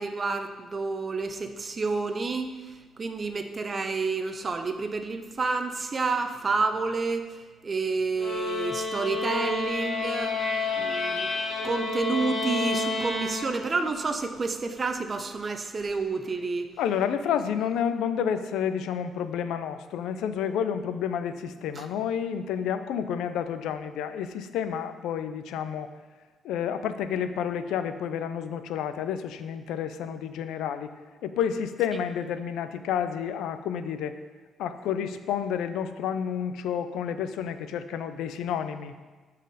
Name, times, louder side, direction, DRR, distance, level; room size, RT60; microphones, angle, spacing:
voice 1, 0.0-7.4 7.6-10.4 10.8-11.3 11.6-16.7 21.8-21.9, right 4 dB, 35° right, 7 dB, 0.7 m, -29 dB
sound 1, 8.2-13.9, left 3 dB, 55° left, 1.6 m, -30 dB
voice 2, 16.8-25.9 26.4-30.9 31.2-34.1 34.6-38.9, left 8 dB, 85° left, 10 dB, 0.4 m, -30 dB
12.5 x 4.2 x 4.1 m, 1.3 s
cardioid pair, 90°, 0 cm